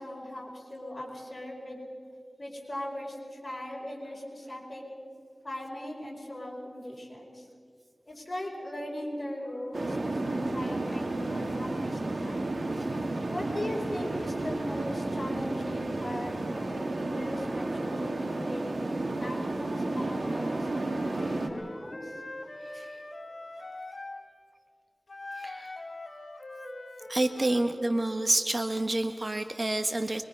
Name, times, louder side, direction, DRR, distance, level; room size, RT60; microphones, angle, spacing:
voice 1, 0.0-1.8 2.4-4.8 5.4-7.5 8.1-12.5 13.3-18.7 19.2-22.2, left 1 dB, 45° left, -2 dB, 5.3 m, -39 dB
sound 1, 9.7-21.5, right 2 dB, 70° right, 1.8 m, -32 dB
Wind instrument woodwind instrument, 20.6-24.2 25.1-27.7, left 2 dB, 65° left, 2.8 m, -43 dB
voice 2, 22.6-23.0 25.3-25.8 27.1-30.2, right 2 dB, 40° right, 7 dB, 1.2 m, -29 dB
25.0 x 22.5 x 5.4 m, 2.3 s
wide cardioid pair, 65°, 0 cm